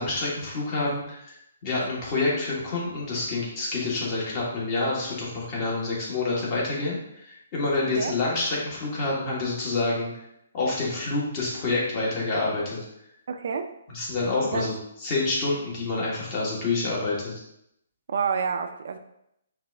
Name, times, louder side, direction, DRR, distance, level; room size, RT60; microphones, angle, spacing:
voice 1, 0.0-10.1 10.5-12.8 13.9-14.7 15.0-17.4, left 3 dB, 30° left, -5 dB, 1.4 m, -27 dB
voice 2, 13.3-13.7 14.5-14.7 18.1-19.0, right 6 dB, 60° right, 7 dB, 0.4 m, -28 dB
5.5 x 2.5 x 3.4 m, 0.79 s
hypercardioid pair, 160°, 0 cm